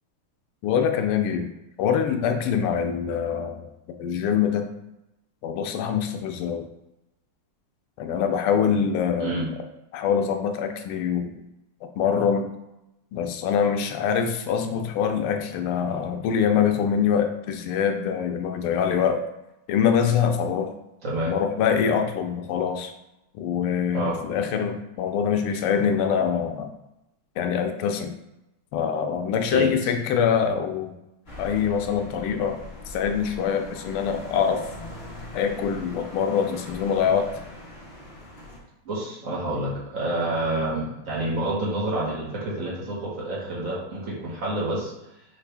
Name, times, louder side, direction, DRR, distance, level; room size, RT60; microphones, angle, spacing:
voice 1, 0.6-1.5 1.8-3.6 4.0-4.6 5.4-6.7 8.0-9.4 9.9-11.3 12.0-12.5 13.1-19.2 19.7-20.7 21.3-22.9 23.3-26.7 27.4-28.2 28.7-30.9 31.4-32.6 32.9-34.6 35.3-37.3, left 7 dB, 85° left, 6 dB, 1.5 m, -24 dB
voice 2, 9.2-9.5 21.0-21.3 23.9-24.1 29.5-29.9 38.8-44.9, right 1 dB, 45° right, -5 dB, 1.3 m, -28 dB
sound 1, 31.3-38.6, left 2 dB, 35° left, 1.2 m, -41 dB
5.8 x 2.5 x 3.3 m, 0.89 s
omnidirectional pair, 2.4 m